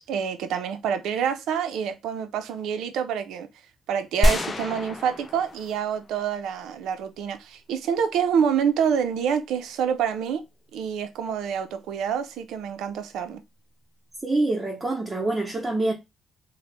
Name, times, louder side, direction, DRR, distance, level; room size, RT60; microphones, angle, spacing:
voice 1, 0.1-3.5 3.9-10.4 10.7-13.4, right 7 dB, 85° right, 0.4 m, -27 dB
sound 1, 4.2-6.2 6.5-6.6, left 1 dB, 35° left, 0.4 m, -26 dB
voice 2, 14.2-15.9, right 2 dB, 20° right, 0.7 m, -25 dB
2.9 x 2.0 x 3.2 m
cardioid pair, 90°, 0 cm